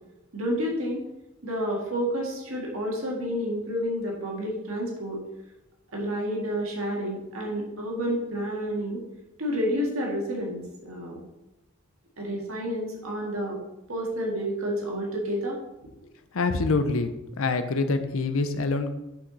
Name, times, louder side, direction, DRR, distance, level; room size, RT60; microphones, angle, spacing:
voice 1, 0.3-1.0 1.4-5.2 5.9-9.0 9.4-11.2 12.2-13.6 13.9-15.6, equal, 70° right, -2 dB, 1.8 m, -30 dB
voice 2, 16.3-17.1 17.4-18.9, left 3 dB, 65° left, 10 dB, 0.6 m, -25 dB
5.9 x 5.9 x 4.0 m, 0.98 s
head